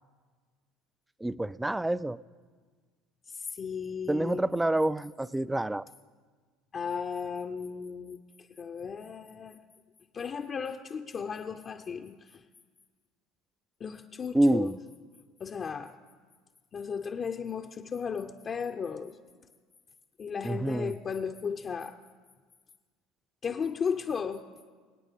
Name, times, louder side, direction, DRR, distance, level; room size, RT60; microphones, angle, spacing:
voice 1, 1.2-2.2 4.1-5.8 14.3-14.8 20.4-20.9, right 1 dB, 10° right, 18 dB, 0.3 m, -27 dB
voice 2, 3.3-4.4 6.7-9.6 10.1-12.4 13.8-14.8 15.4-15.9 16.7-19.2 20.2-22.0 23.4-24.4, left 6 dB, 40° left, 4 dB, 0.6 m, -35 dB
25.5 x 8.9 x 3.6 m, 1.5 s
hypercardioid pair, 70°, 0 cm